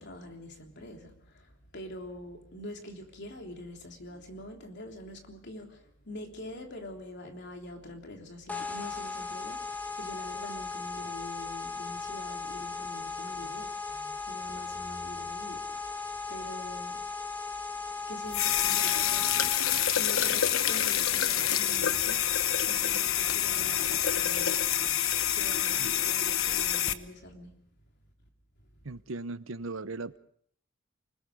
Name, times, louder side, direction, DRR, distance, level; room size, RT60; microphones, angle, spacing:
voice 1, 0.0-17.0 18.1-24.6 25.0-27.6 28.7-28.8, left 1 dB, 55° left, 3.4 m, -45 dB
sound 1, 8.5-19.9, left 4 dB, 10° left, 1.7 m, -37 dB
sound 2, 18.3-26.9, left 10 dB, 85° left, 1.1 m, -27 dB
voice 2, 28.8-30.2, right 3 dB, 75° right, 0.9 m, -38 dB
29.0 x 20.0 x 5.0 m
head